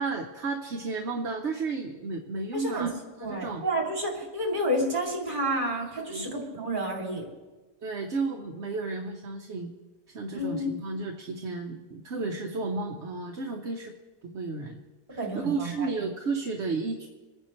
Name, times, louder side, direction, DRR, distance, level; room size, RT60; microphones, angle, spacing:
voice 1, 0.0-2.9 3.3-3.6 6.1-6.3 7.8-9.7 10.1-13.9 14.2-14.8 15.1-17.1, right 4 dB, 70° right, 2 dB, 1.2 m, -32 dB
voice 2, 2.5-2.9 3.2-7.3 10.3-10.7 15.2-15.9, right 1 dB, 40° right, -1 dB, 3.1 m, -30 dB
27.0 x 10.0 x 3.2 m, 1.3 s
omnidirectional pair, 1.2 m